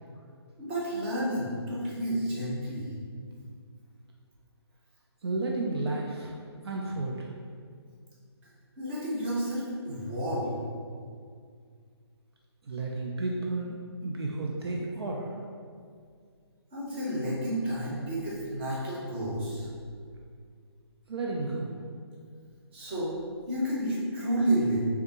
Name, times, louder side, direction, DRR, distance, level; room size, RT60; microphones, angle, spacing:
voice 1, 0.6-2.9 8.8-10.5 16.7-19.7 22.7-23.2 23.5-24.8, right 1 dB, 25° right, -7 dB, 0.9 m, -30 dB
voice 2, 5.2-6.4 6.6-7.4 12.6-15.4 21.1-21.8, right 2 dB, 65° right, -1 dB, 0.5 m, -32 dB
3.5 x 3.4 x 2.9 m, 2.1 s
figure-of-eight pair, 155°, 14 cm